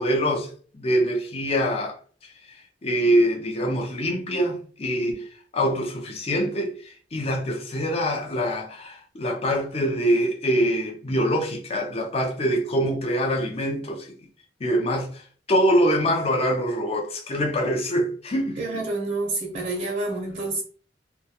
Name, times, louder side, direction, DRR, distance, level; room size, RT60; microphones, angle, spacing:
voice 1, 0.0-2.0 2.2-5.2 5.5-14.1 14.6-18.6, equal, 35° left, 0.5 m, -24 dB
voice 2, 18.6-20.6, right 2 dB, 45° right, 0.6 m, -28 dB
2.3 x 2.2 x 2.7 m
head